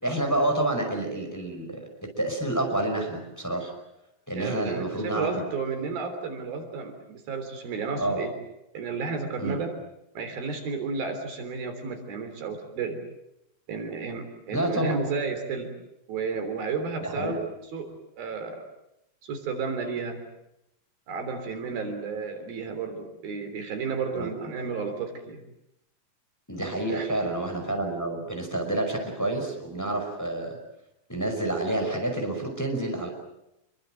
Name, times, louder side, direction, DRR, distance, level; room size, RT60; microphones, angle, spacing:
voice 1, 0.0-3.7 4.3-5.3 8.0-8.2 9.4-9.6 14.5-15.0 17.0-17.4 24.1-24.3 26.5-30.6 31.1-33.1, right 1 dB, 5° left, 3 dB, 5.1 m, -28 dB
voice 2, 4.4-8.3 8.7-9.7 10.2-13.0 13.7-15.7 16.1-17.4 17.7-17.9 18.2-18.6 19.2-20.2 21.1-25.4 26.9-27.2, right 4 dB, 85° right, 6 dB, 5.3 m, -32 dB
27.5 x 23.5 x 7.8 m, 0.85 s
omnidirectional pair, 4.1 m